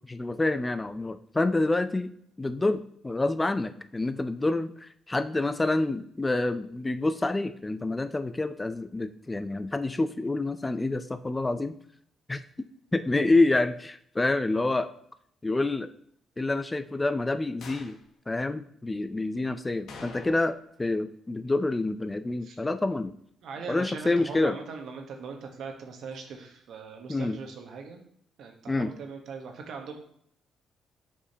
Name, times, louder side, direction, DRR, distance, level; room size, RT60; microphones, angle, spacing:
voice 1, 0.1-2.1 2.4-11.8 12.3-12.7 12.9-14.9 15.4-15.9 16.4-18.0 18.3-23.1 23.6-24.6 27.1-27.4 28.7-28.9, left 2 dB, 20° left, 11 dB, 0.3 m, -27 dB
sound 1, 17.6-18.0 19.9-20.7 21.0-21.1 26.1-26.2, left 4 dB, 75° left, 1.0 m, -46 dB
voice 2, 23.4-28.0 28.4-29.9, right 5 dB, 75° right, 4 dB, 1.1 m, -40 dB
6.7 x 4.9 x 2.8 m, 0.68 s
cardioid pair, 90°, 0 cm